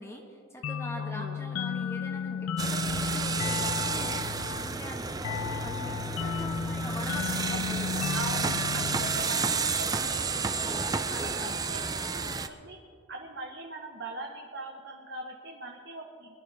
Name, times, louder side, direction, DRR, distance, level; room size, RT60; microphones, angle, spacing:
voice 1, 0.0-4.2 4.6-7.9, equal, 10° left, 0 dB, 1.3 m, -43 dB
School bell synth, 0.6-10.0, left 7 dB, 90° left, 0.4 m, -34 dB
voice 2, 1.0-1.4 7.5-12.8 13.1-16.4, right 2 dB, 55° right, 1 dB, 1.0 m, -42 dB
sound 1, 2.6-12.5, right 4 dB, 15° right, 0.4 m, -31 dB
21.5 x 12.0 x 3.4 m, 2.4 s
head